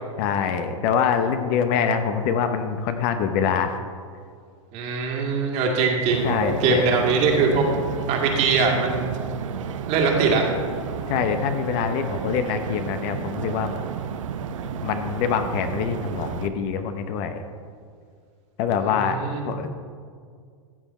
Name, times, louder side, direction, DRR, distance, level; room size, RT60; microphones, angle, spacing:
voice 1, 0.2-3.8 6.2-6.9 11.1-13.8 14.8-17.4 18.6-19.2 19.5-19.7, left 7 dB, 45° left, 8 dB, 0.9 m, -24 dB
voice 2, 4.7-7.7 8.1-9.1 9.9-10.4 18.9-19.5, right 4 dB, 40° right, 0 dB, 2.2 m, -22 dB
sound 1, 6.1-16.5, right 7 dB, 70° right, 0.7 m, -32 dB
14.5 x 7.1 x 4.3 m, 2.1 s
hypercardioid pair, 120°, 17 cm